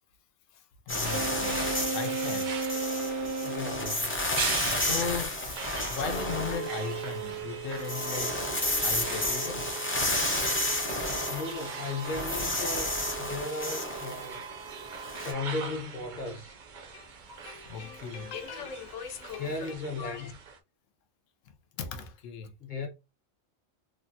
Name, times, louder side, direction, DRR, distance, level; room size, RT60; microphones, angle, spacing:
voice 1, 0.5-2.7 3.2-3.5 4.8-5.6 5.9-9.7 13.4-13.5 16.7-20.3 21.4-22.5, left 6 dB, 80° left, 1.0 m, -38 dB
sound 1, 0.9-7.3 7.6-15.3, left 1 dB, 20° left, 0.3 m, -31 dB
sound 2, 1.0-20.6, right 6 dB, 60° right, 0.5 m, -40 dB
Wind instrument woodwind instrument, 1.1-4.0, right 3 dB, 85° right, 1.0 m, -33 dB
voice 2, 3.4-4.1 11.3-14.4 15.1-16.5 19.4-20.3 22.6-22.9, left 3 dB, 45° left, 0.9 m, -36 dB
3.3 x 2.1 x 2.6 m
omnidirectional pair, 1.3 m